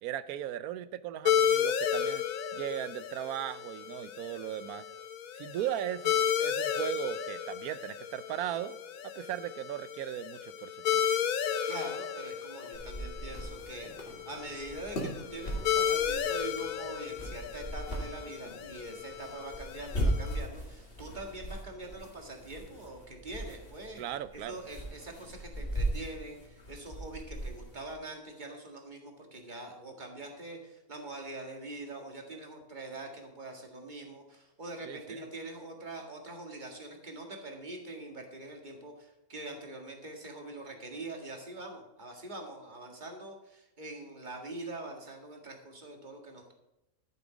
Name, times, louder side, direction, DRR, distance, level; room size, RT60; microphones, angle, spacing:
voice 1, 0.0-2.3 2.5-4.8 5.3-8.8 9.0-11.0 24.0-24.6 34.9-35.2, right 11 dB, 90° right, 15 dB, 1.1 m, -37 dB
sound 1, 1.3-20.4, left 8 dB, 75° left, 1.2 m, -33 dB
voice 2, 11.6-24.0 24.3-46.5, right 2 dB, 30° right, 2 dB, 2.0 m, -44 dB
sound 2, 12.7-27.9, right 1 dB, 40° left, 2.2 m, -39 dB
12.0 x 7.1 x 5.1 m, 0.92 s
omnidirectional pair, 1.5 m